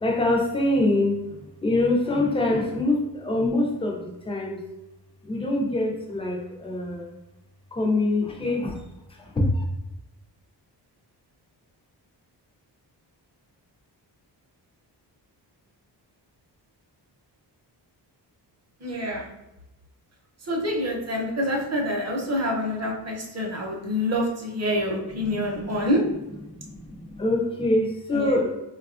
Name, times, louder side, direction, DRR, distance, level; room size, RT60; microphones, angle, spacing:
voice 1, 0.0-1.3 1.6-4.6 5.2-7.2 7.7-8.8 9.2-9.6 25.3-25.9 26.4-28.5, left 2 dB, 15° left, 0 dB, 0.4 m, -25 dB
voice 2, 18.8-19.2 20.5-26.0 28.1-28.3, equal, 35° right, -1 dB, 0.7 m, -26 dB
4.0 x 2.3 x 2.4 m, 0.95 s
wide cardioid pair, 175°, 43 cm